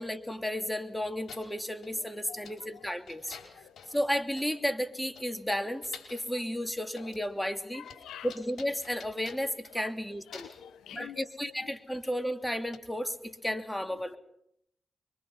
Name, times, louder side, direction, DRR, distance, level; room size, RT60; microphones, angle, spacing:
voice 1, 0.0-3.4 3.9-7.8 8.2-10.5 10.9-14.2, equal, 5° left, 2.8 m, -33 dB
sound 1, 0.9-1.0 1.3-2.0 2.4-2.7 3.1-4.0 4.4-4.5 4.8-4.9 5.2-6.3 6.8-7.3 7.6-10.0 10.3-10.7 12.0-12.1 12.7-12.8, left 6 dB, 70° left, 4.8 m, -50 dB
voice 2, 7.7-8.3 9.8-9.9 10.3-11.2, left 11 dB, 90° left, 1.0 m, -46 dB
26.0 x 23.5 x 5.7 m
supercardioid pair, 50°, 0 cm